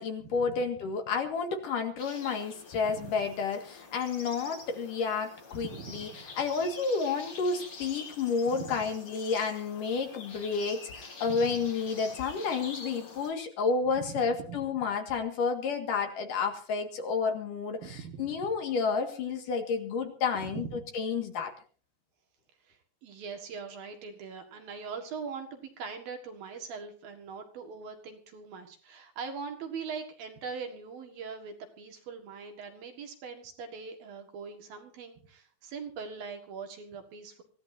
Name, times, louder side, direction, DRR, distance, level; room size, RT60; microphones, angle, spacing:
voice 1, 0.0-6.1 6.4-20.7 20.9-21.5, left 5 dB, 55° left, 5 dB, 3.1 m, -30 dB
sound 1, 2.0-13.3, left 4 dB, 30° left, 3.2 m, -47 dB
voice 2, 5.6-6.2 8.5-8.9 11.2-11.6 14.0-14.6 17.8-18.2 20.3-20.8 22.7-37.4, right 5 dB, 60° right, 5 dB, 3.3 m, -41 dB
25.0 x 17.0 x 2.8 m, 0.41 s
omnidirectional pair, 5.2 m